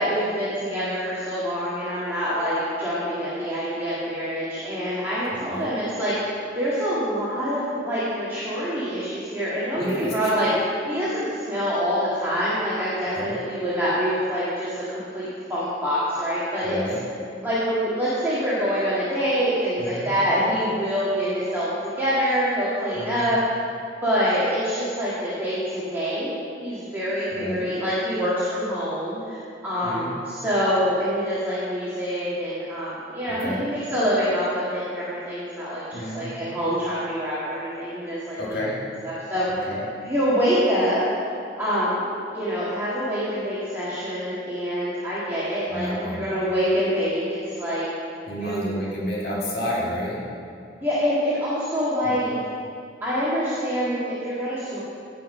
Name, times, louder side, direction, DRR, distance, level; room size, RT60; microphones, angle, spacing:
voice 1, 0.0-6.2 6.6-10.5 10.9-16.8 17.4-21.7 22.0-23.5 24.0-26.3 26.6-38.7 39.0-39.7 40.0-41.0 41.6-47.9 48.4-48.8 50.8-52.3 53.0-54.8, equal, 10° right, -11 dB, 2.0 m, -25 dB
voice 2, 5.3-5.7 9.7-10.1 13.1-13.4 16.6-17.0 19.8-20.1 22.9-23.3 27.3-27.6 29.8-30.1 33.3-33.6 35.9-36.3 38.4-38.8 39.7-39.9 45.7-46.2 48.3-50.3 52.0-52.2, equal, 55° left, -5 dB, 1.9 m, -30 dB
16.5 x 5.6 x 5.5 m, 2.4 s
head